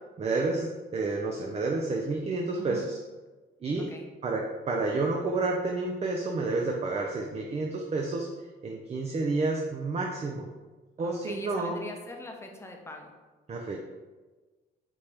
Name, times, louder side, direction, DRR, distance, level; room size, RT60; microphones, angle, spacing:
voice 1, 0.2-3.0 3.6-3.9 4.2-8.3 8.6-10.5 11.0-11.8 13.5-13.8, right 3 dB, 30° right, 1 dB, 0.5 m, -30 dB
voice 2, 2.6-2.9 3.8-4.1 11.0-13.1, left 2 dB, 15° left, 2 dB, 0.7 m, -42 dB
5.1 x 2.8 x 3.3 m, 1.3 s
cardioid pair, 90°, 20 cm